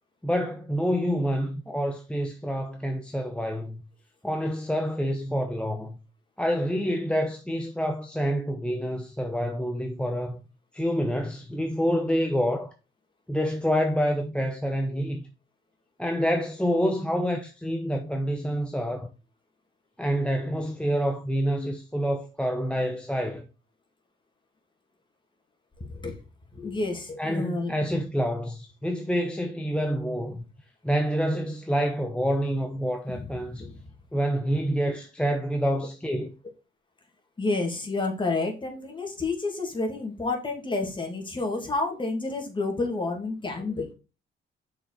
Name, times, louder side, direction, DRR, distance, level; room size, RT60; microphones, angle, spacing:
voice 1, 0.2-3.8 4.2-6.0 6.4-10.4 10.7-12.7 13.3-15.3 16.0-19.1 20.0-23.5 27.2-30.4 30.8-33.7 34.1-36.3, equal, 5° left, 0.8 m, -27 dB
voice 2, 26.5-27.7 33.1-33.8 37.4-43.9, left 3 dB, 25° left, 2.5 m, -30 dB
6.2 x 5.0 x 4.1 m
cardioid pair, 90°, 20 cm